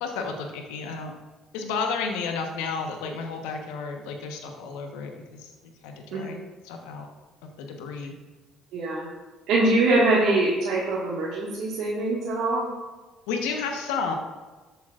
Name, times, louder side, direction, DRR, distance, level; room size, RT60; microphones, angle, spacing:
voice 1, 0.0-1.1 1.5-6.4 6.6-7.1 7.4-8.1 13.3-14.1, left 5 dB, 80° left, 3 dB, 1.2 m, -32 dB
voice 2, 6.1-6.4 8.7-9.1 9.5-12.7, right 2 dB, 70° right, -6 dB, 1.9 m, -23 dB
13.5 x 8.0 x 2.5 m, 1.3 s
hypercardioid pair, 60°, 0 cm